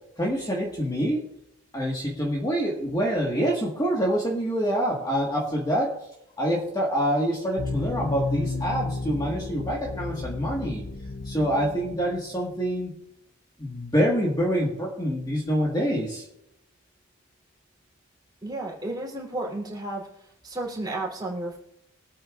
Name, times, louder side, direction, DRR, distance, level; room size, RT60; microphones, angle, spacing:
voice 1, 0.2-1.2 1.7-6.0 6.4-10.8 11.2-12.9 13.6-16.2, equal, 20° left, -2 dB, 1.5 m, -26 dB
sound 1, 7.6-12.6, left 3 dB, 80° left, 0.9 m, -33 dB
voice 2, 18.4-21.6, right 2 dB, 20° right, -4 dB, 3.1 m, -33 dB
23.5 x 8.7 x 2.5 m, 0.80 s
head